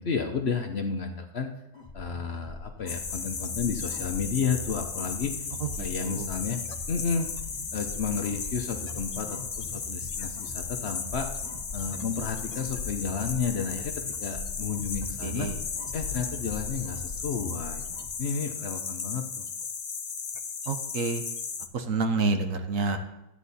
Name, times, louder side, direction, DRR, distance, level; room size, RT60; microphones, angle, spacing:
voice 1, 0.0-1.5 1.9-5.4 5.8-6.6 6.9-7.3 7.7-11.3 11.7-15.5 15.9-17.8 18.2-19.4, left 5 dB, 50° left, 5 dB, 0.9 m, -32 dB
sound 1, 1.7-18.1, left 2 dB, 35° left, 1.2 m, -41 dB
sound 2, 2.9-21.7, left 6 dB, 70° left, 0.3 m, -36 dB
voice 2, 5.6-6.3 15.2-15.6 20.7-21.2 21.7-23.0, right 4 dB, 65° right, 7 dB, 1.2 m, -28 dB
12.0 x 8.4 x 4.1 m, 0.93 s
omnidirectional pair, 1.6 m